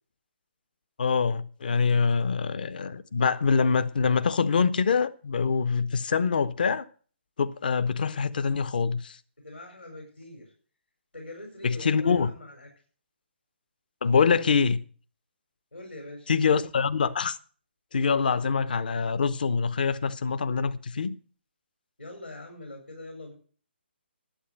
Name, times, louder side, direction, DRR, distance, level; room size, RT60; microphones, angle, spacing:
voice 1, 1.0-6.8 7.4-9.2 11.6-12.3 14.0-14.8 16.3-17.4 17.9-21.1, left 5 dB, 50° left, 1.0 m, -25 dB
voice 2, 9.4-10.5 11.1-12.7 15.7-16.3 22.0-23.3, left 1 dB, 80° left, 5.1 m, -43 dB
11.5 x 8.5 x 7.7 m
figure-of-eight pair, 135°, 6 cm